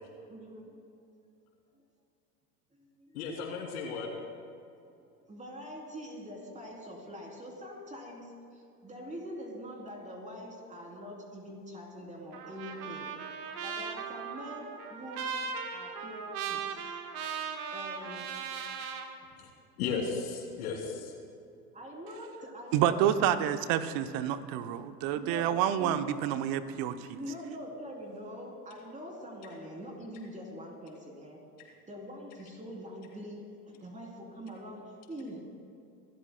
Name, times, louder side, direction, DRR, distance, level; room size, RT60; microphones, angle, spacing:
voice 1, 0.3-0.8 2.8-3.2 4.9-13.1 13.6-15.3 15.7-17.0 17.7-18.2 21.7-23.5 25.2-26.2 27.1-35.5, equal, 15° right, 0 dB, 3.3 m, -44 dB
voice 2, 3.1-4.1 19.4-19.5 19.8-21.1, left 5 dB, 65° left, 0 dB, 3.0 m, -35 dB
Trumpet, 12.3-19.1, right 6 dB, 65° right, 1.5 m, -38 dB
voice 3, 22.7-27.2, right 10 dB, 45° right, 11 dB, 0.9 m, -28 dB
26.0 x 13.0 x 2.2 m, 2.5 s
hypercardioid pair, 85°, 48 cm